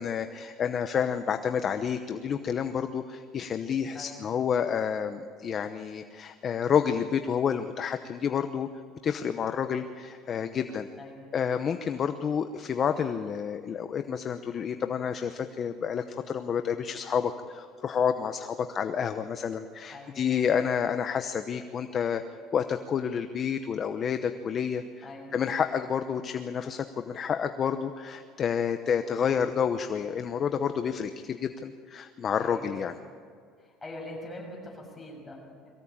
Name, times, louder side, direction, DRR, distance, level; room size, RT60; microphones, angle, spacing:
voice 1, 0.0-8.7 9.0-10.9 11.3-22.2 22.5-25.1 25.3-33.0, left 7 dB, 35° left, 8 dB, 0.9 m, -29 dB
voice 2, 3.9-4.3 11.0-11.3 19.9-20.4 25.0-25.5 32.4-32.9 33.6-35.7, left 1 dB, 15° left, -1 dB, 7.2 m, -43 dB
23.0 x 16.5 x 8.7 m, 2.2 s
cardioid pair, 140°, 0 cm